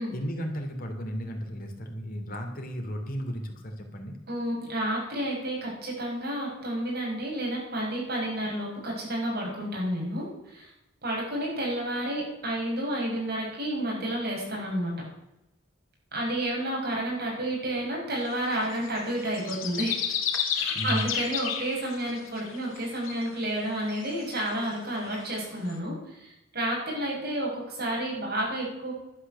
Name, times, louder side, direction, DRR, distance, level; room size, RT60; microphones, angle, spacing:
voice 1, 0.1-4.2 20.7-21.0, equal, 45° left, 3 dB, 2.8 m, -34 dB
voice 2, 4.3-10.3 10.5-10.7 11.0-14.9 16.1-20.0 20.5-28.9, right 1 dB, 50° right, -2 dB, 6.6 m, -30 dB
sound 1, 18.3-22.8 23.0-23.3 23.9-24.4 24.7-24.8 25.3-25.4 25.7-25.8, left 8 dB, 75° left, 2.4 m, -31 dB
11.5 x 10.0 x 6.9 m, 0.90 s
head